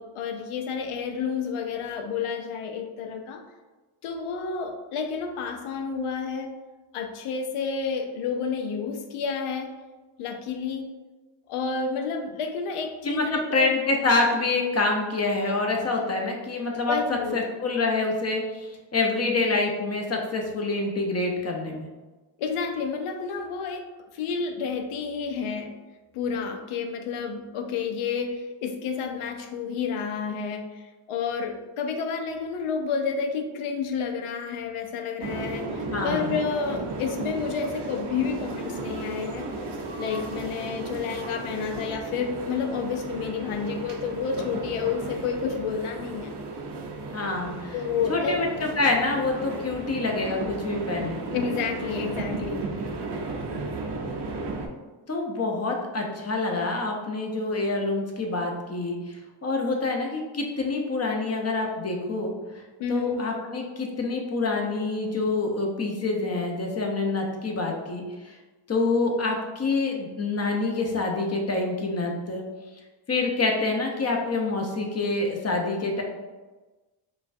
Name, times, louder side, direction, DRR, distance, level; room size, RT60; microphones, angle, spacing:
voice 1, 0.0-3.4 4.0-6.5 6.9-9.7 10.2-10.9 11.5-13.7 16.8-17.4 22.4-25.7 26.1-39.5 40.0-46.3 47.7-48.4 51.3-52.7 62.8-63.2, left 5 dB, 80° left, 5 dB, 0.6 m, -30 dB
voice 2, 13.0-21.9 35.9-36.4 47.1-47.7 48.1-51.4 55.1-62.6 62.9-68.4 68.7-72.4 73.1-76.0, left 3 dB, 30° left, 1 dB, 0.7 m, -26 dB
sound 1, 35.2-54.7, right 3 dB, 55° right, 0.7 m, -34 dB
5.1 x 2.3 x 2.6 m, 1.2 s
cardioid pair, 85°, 50 cm